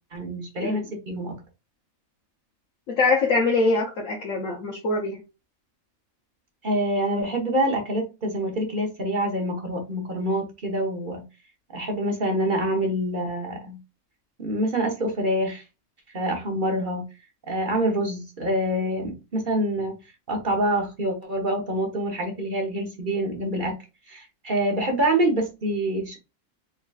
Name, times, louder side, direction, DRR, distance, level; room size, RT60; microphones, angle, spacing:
voice 1, 0.1-1.3 6.6-11.2 11.7-13.8 14.4-15.6 16.1-17.0 17.5-19.9 20.3-23.7 24.1-26.2, right 1 dB, 40° right, 1 dB, 1.1 m, -26 dB
voice 2, 2.9-5.2, left 3 dB, 70° left, -1 dB, 1.2 m, -23 dB
4.0 x 3.8 x 2.3 m, 0.28 s
omnidirectional pair, 1.4 m